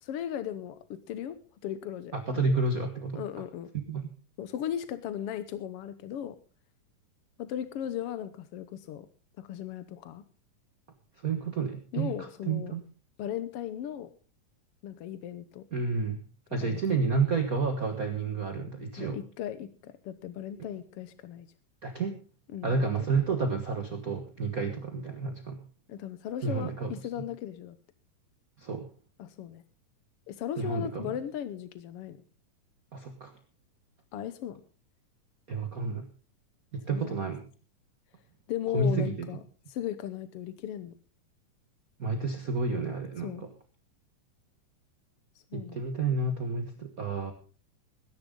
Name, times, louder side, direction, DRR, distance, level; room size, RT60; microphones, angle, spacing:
voice 1, 0.0-1.4 1.6-2.6 3.2-3.7 4.4-6.3 7.4-9.1 9.4-10.2 11.9-12.7 13.2-14.1 14.8-15.6 16.6-16.8 19.0-21.5 22.5-22.8 25.9-27.8 29.2-29.6 30.3-32.2 34.1-34.6 36.9-37.2 38.5-39.4 39.7-40.9 43.2-43.5 45.5-45.8, left 10 dB, 80° left, 12 dB, 1.3 m, -37 dB
voice 2, 2.1-3.2 3.9-4.1 11.2-12.8 15.7-16.2 16.5-19.2 21.8-22.2 22.6-25.6 26.4-27.1 28.6-28.9 30.6-31.1 32.9-33.3 35.5-36.1 36.7-37.4 38.7-39.3 42.0-43.5 45.5-47.3, right 4 dB, 60° right, 6 dB, 0.9 m, -30 dB
20.0 x 10.5 x 3.8 m, 0.37 s
omnidirectional pair, 3.9 m